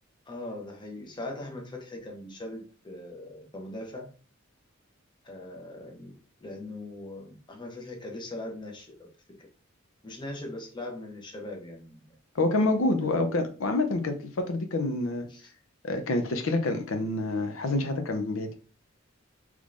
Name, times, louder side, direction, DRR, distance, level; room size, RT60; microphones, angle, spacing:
voice 1, 0.3-4.1 5.2-9.1 10.0-12.2 13.0-13.5 15.3-15.5, left 1 dB, 20° left, 1 dB, 0.8 m, -40 dB
voice 2, 12.3-15.3 15.8-18.5, left 2 dB, 80° left, 6 dB, 0.6 m, -27 dB
3.6 x 3.1 x 2.5 m, 0.37 s
head